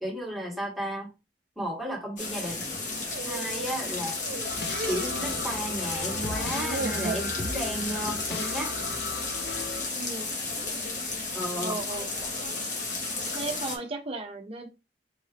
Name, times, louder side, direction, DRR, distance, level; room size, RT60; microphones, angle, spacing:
voice 1, 0.0-1.1 1.6-2.7 3.2-4.2 4.8-8.7 11.3-11.8, equal, ahead, 1.3 m, -33 dB
sound 1, 2.2-13.8, left 3 dB, 45° left, 1.3 m, -33 dB
sound 2, 2.8-3.8 4.0-5.9 6.2-7.4 7.8-8.2 8.5-8.7 9.6-10.0 10.5-10.9 11.7-13.9, right 4 dB, 60° right, 0.5 m, -39 dB
sound 3, 4.4-9.8, left 4 dB, 60° left, 0.6 m, -36 dB
voice 2, 9.9-10.3 11.6-12.1 13.3-14.7, right 3 dB, 35° right, 0.7 m, -36 dB
4.6 x 2.6 x 3.3 m
head